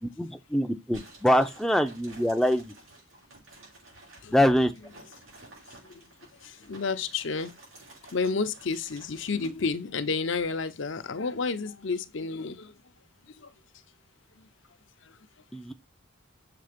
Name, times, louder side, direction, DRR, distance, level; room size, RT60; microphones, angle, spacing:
voice 1, 0.0-2.7 4.3-4.7 15.5-15.7, equal, ahead, 0.4 m, -24 dB
sound 1, 0.9-9.7, right 2 dB, 85° right, 4.9 m, -52 dB
voice 2, 6.4-7.5 8.1-12.7 13.4-13.5 14.4-14.5 15.0-15.2, left 4 dB, 65° left, 0.6 m, -31 dB
6.8 x 3.4 x 5.0 m
head